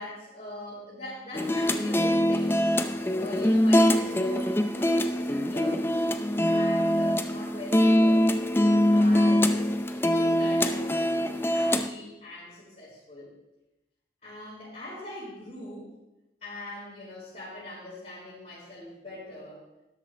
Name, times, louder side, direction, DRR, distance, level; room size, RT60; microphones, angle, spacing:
voice 1, 0.0-5.8 6.4-8.2 8.9-13.3 14.2-15.9 16.4-19.6, left 1 dB, 45° left, -11 dB, 4.9 m, -42 dB
sound 1, 1.3-11.9, left 1 dB, 15° left, 0.5 m, -23 dB
12.5 x 12.0 x 3.4 m, 0.96 s
head